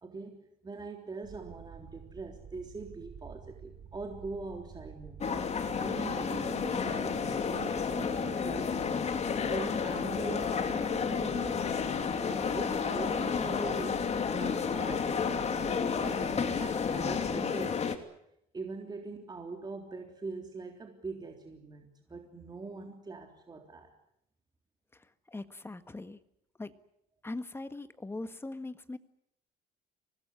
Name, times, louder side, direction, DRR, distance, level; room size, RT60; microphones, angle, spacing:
voice 1, 0.0-5.3 5.8-11.8 12.2-17.9 18.5-23.9, right 3 dB, 25° right, 2 dB, 3.6 m, -42 dB
sound 1, 1.2-17.4, right 7 dB, 50° right, 7.4 m, -50 dB
sound 2, 5.2-18.0, left 6 dB, 40° left, 2.9 m, -31 dB
voice 2, 25.3-26.2 26.6-26.7 27.2-29.0, left 2 dB, 15° left, 10 dB, 1.6 m, -40 dB
25.0 x 19.5 x 9.9 m, 0.78 s
cardioid pair, 110°, 17 cm